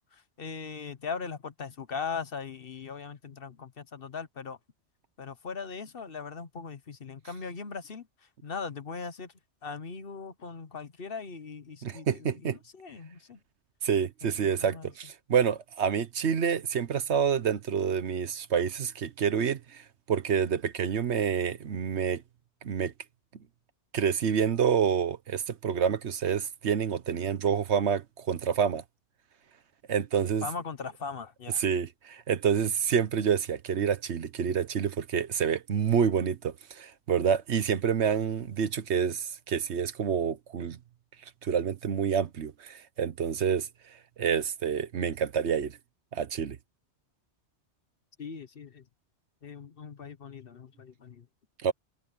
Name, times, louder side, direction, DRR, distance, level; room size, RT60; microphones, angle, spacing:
voice 1, 0.0-4.6 5.2-8.1 8.4-9.3 9.6-13.4 14.2-14.9 30.4-31.6 48.2-48.8 49.4-51.3, left 5 dB, 55° left, 1.2 m, -39 dB
voice 2, 11.8-12.6 13.8-22.2 22.6-22.9 23.9-28.8 29.9-30.5 31.6-40.8 41.4-43.7 44.2-45.8 46.1-46.6 51.6-51.7, right 7 dB, 70° right, 1.2 m, -28 dB
omnidirectional pair, 1.2 m